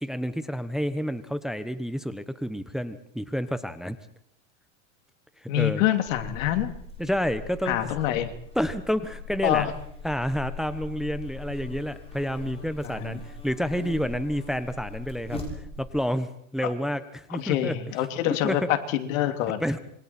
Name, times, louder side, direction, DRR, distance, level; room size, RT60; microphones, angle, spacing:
voice 1, 0.0-4.0 5.4-5.8 7.0-7.8 8.1-8.2 8.5-9.7 10.0-17.8 18.4-18.6 19.6-19.8, equal, ahead, 11 dB, 1.2 m, -29 dB
voice 2, 5.5-6.7 7.6-8.3 9.4-9.7 12.8-13.2 16.6-16.7 17.3-19.6, left 12 dB, 70° left, 7 dB, 3.0 m, -26 dB
Buzz, 6.0-16.0, left 3 dB, 15° left, 7.3 m, -40 dB
27.0 x 24.5 x 4.5 m, 0.68 s
supercardioid pair, 115°, 41 cm